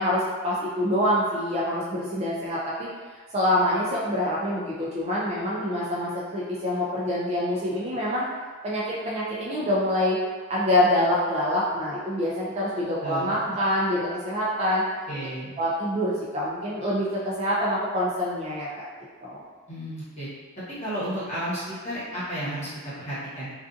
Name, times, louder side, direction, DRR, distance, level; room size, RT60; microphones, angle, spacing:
voice 1, 0.0-2.9 3.3-8.2 8.6-10.2 10.5-14.8 15.6-18.8 19.2-19.4, left 1 dB, 30° right, -6 dB, 0.3 m, -26 dB
voice 2, 13.0-13.3 15.1-15.5 19.7-20.3 20.8-23.5, right 1 dB, 30° left, -11 dB, 1.0 m, -32 dB
2.5 x 2.4 x 2.4 m, 1.4 s
head